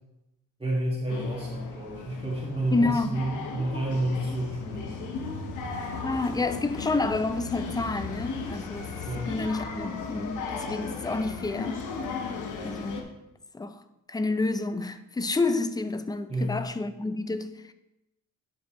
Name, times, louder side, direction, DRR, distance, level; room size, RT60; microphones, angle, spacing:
voice 1, 0.6-5.2 9.0-9.4 16.3-16.6, right 1 dB, 20° right, 1.8 m, -30 dB
sound 1, 1.1-13.0, left 4 dB, 85° left, 1.1 m, -36 dB
voice 2, 2.7-3.2 6.0-8.9 9.3-11.9 12.6-13.1 13.5-13.8 14.1-17.7, left 3 dB, 15° left, 0.5 m, -29 dB
11.0 x 5.2 x 3.1 m
cardioid pair, 90°, 30 cm